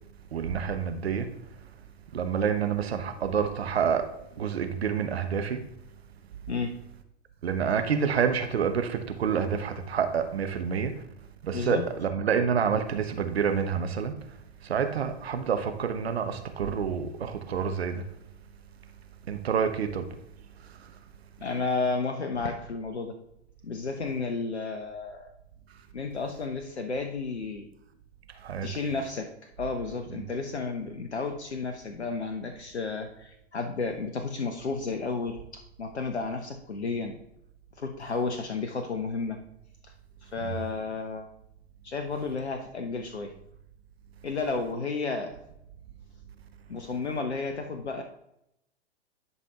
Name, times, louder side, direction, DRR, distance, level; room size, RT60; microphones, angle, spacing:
voice 1, 0.3-1.3 2.1-4.1 4.4-5.6 7.4-11.0 11.4-14.1 14.6-18.0 19.3-20.1 28.4-28.7 30.2-30.3 40.4-40.6, right 7 dB, 70° right, 1.0 m, -28 dB
voice 2, 11.5-11.8 21.4-23.1 23.6-25.3 25.9-27.7 28.6-29.3 29.6-37.1 37.8-39.4 40.2-41.3 41.8-43.3 44.2-45.3 46.7-48.0, left 4 dB, 85° left, 0.8 m, -32 dB
11.0 x 5.5 x 2.9 m
figure-of-eight pair, 100°, 32 cm